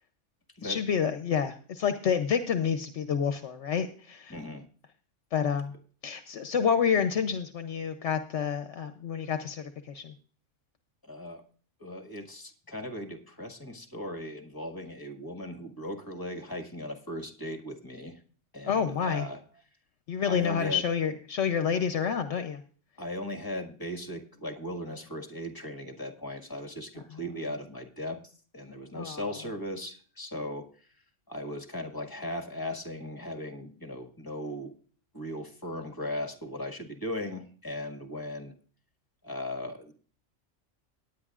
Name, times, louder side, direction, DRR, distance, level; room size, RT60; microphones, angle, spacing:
voice 1, 0.6-4.4 5.3-5.7 6.0-10.1 18.7-19.2 20.1-22.6 28.9-29.3, left 7 dB, 70° left, 8 dB, 1.0 m, -29 dB
voice 2, 4.3-4.7 11.0-11.4 11.8-18.2 18.5-19.4 20.3-20.9 23.0-28.2 28.5-30.9 31.3-34.7 35.1-38.5 39.2-39.9, left 1 dB, 15° left, 4 dB, 1.7 m, -38 dB
18.0 x 10.0 x 2.4 m, 0.42 s
omnidirectional pair, 1.3 m